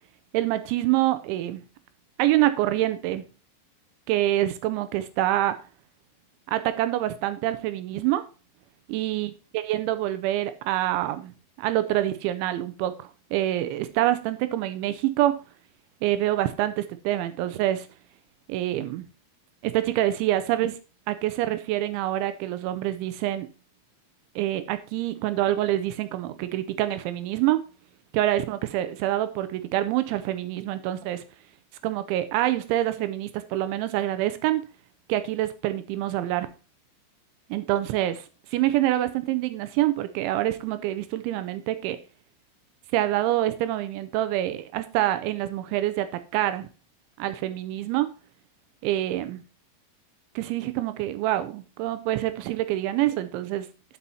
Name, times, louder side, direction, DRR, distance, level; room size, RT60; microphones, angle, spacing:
voice 1, 0.3-1.6 2.2-3.2 4.1-5.6 6.5-8.2 8.9-9.3 9.7-11.3 11.6-15.3 16.0-17.9 18.5-19.1 19.6-20.8 21.1-23.5 24.4-27.6 28.1-31.2 31.8-34.6 35.1-36.5 37.5-42.0 42.9-46.7 47.2-48.1 48.8-49.4 50.4-53.7, right 14 dB, 85° right, 11 dB, 3.0 m, -26 dB
11.5 x 5.6 x 4.1 m, 0.34 s
omnidirectional pair, 5.3 m